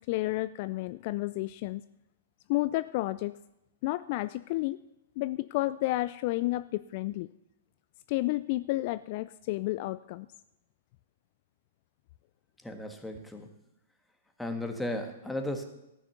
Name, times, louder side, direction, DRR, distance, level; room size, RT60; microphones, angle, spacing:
voice 1, 0.1-1.8 2.5-3.3 3.8-4.8 5.2-7.3 8.1-10.3, left 18 dB, 50° left, 15 dB, 0.3 m, -31 dB
voice 2, 12.6-13.6 14.4-15.6, left 1 dB, 5° left, 4 dB, 1.5 m, -35 dB
14.0 x 6.0 x 6.8 m, 0.89 s
hypercardioid pair, 115°, 0 cm